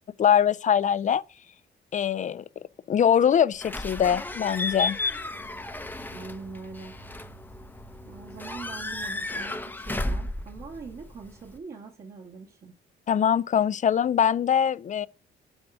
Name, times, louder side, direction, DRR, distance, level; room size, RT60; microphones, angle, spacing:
voice 1, 0.2-1.2 1.9-2.4 2.9-5.0 13.1-15.1, left 8 dB, 40° left, 0.4 m, -22 dB
Slam / Squeak / Alarm, 3.6-11.6, left 2 dB, 10° left, 0.7 m, -34 dB
voice 2, 6.1-7.0 8.0-12.8, right 4 dB, 50° right, 1.9 m, -42 dB
6.1 x 4.7 x 6.2 m
cardioid pair, 90°, 20 cm